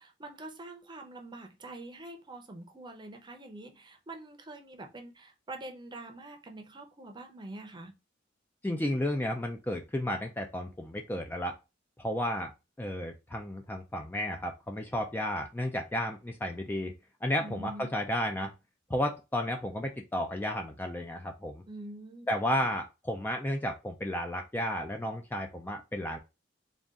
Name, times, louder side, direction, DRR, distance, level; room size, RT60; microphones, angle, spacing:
voice 1, 0.0-7.9 17.4-17.9 21.7-22.3, right 2 dB, 25° right, 0.7 m, -45 dB
voice 2, 8.6-11.6 12.0-12.5 12.8-16.9 17.2-18.5 18.9-21.6 22.3-26.2, left 1 dB, 10° left, 0.3 m, -33 dB
3.8 x 2.4 x 3.6 m
head